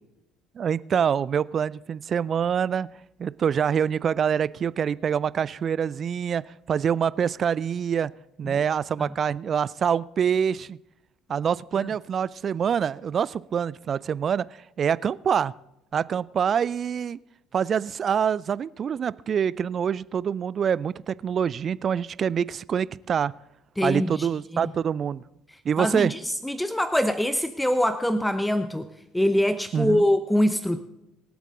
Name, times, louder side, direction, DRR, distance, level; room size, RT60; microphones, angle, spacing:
voice 1, 0.6-2.9 3.2-8.1 8.4-10.8 11.3-15.5 15.9-17.2 17.5-23.3 23.8-25.2 25.6-26.1 29.7-30.0, right 7 dB, 40° right, 21 dB, 0.4 m, -25 dB
voice 2, 23.8-24.3 24.5-24.7 25.8-28.9 29.1-30.8, left 1 dB, 5° left, 11 dB, 0.8 m, -24 dB
24.5 x 8.3 x 3.7 m, 0.91 s
figure-of-eight pair, 60°, 0 cm